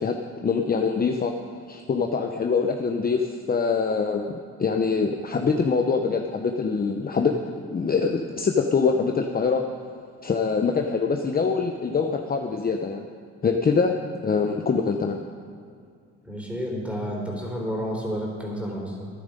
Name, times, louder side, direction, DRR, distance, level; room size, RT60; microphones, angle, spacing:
voice 1, 0.0-1.3 1.7-4.3 4.6-9.6 10.2-13.0 13.4-13.9 14.2-15.2, left 5 dB, 30° left, 3 dB, 0.8 m, -24 dB
voice 2, 16.2-19.1, equal, 5° right, -2 dB, 3.7 m, -30 dB
13.0 x 10.5 x 5.3 m, 2.2 s
cardioid pair, 90°, 30 cm